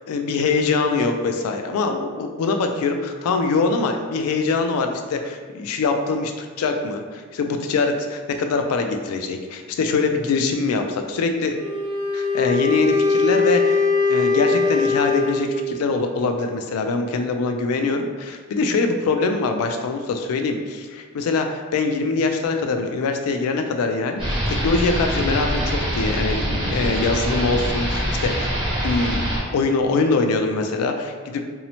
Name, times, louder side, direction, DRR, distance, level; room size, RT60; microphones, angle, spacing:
voice 1, 0.1-11.5 12.1-13.8 14.1-26.4 26.7-28.5 28.8-31.4, left 3 dB, 80° left, 6 dB, 0.3 m, -23 dB
Wind instrument woodwind instrument, 11.5-15.8, left 4 dB, 65° right, 0.4 m, -21 dB
sound 1, 24.2-29.4, equal, 25° right, 0.7 m, -24 dB
2.7 x 2.0 x 2.8 m, 1.5 s
head